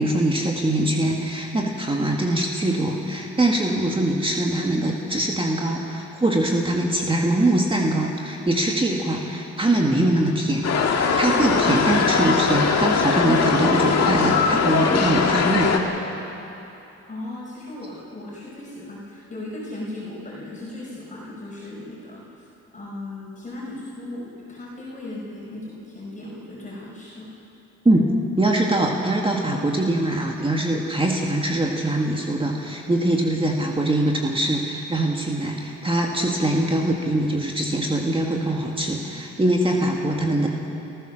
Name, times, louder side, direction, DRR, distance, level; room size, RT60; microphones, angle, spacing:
voice 1, 0.0-10.7 10.9-15.7 27.9-28.0 28.4-40.5, right 1 dB, 15° right, 0 dB, 2.0 m, -22 dB
sound 1, 10.6-15.8, left 5 dB, 55° left, 2.1 m, -20 dB
voice 2, 17.1-22.4 22.7-27.3, left 1 dB, 25° left, -5 dB, 5.4 m, -37 dB
28.0 x 15.0 x 6.5 m, 2.9 s
cardioid pair, 90°, 30 cm